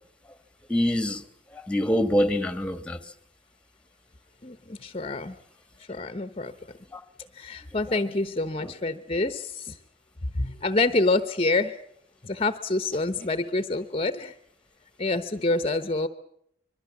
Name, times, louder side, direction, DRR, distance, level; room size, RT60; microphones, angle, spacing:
voice 1, 0.7-1.2 1.5-3.1 6.9-7.0 8.6-8.7, left 1 dB, 5° left, 1.4 m, -25 dB
voice 2, 4.4-5.4 5.9-6.5 7.3-9.8 10.3-11.8 12.2-14.3 15.0-16.1, left 2 dB, 30° left, 0.9 m, -27 dB
25.0 x 23.0 x 7.2 m
head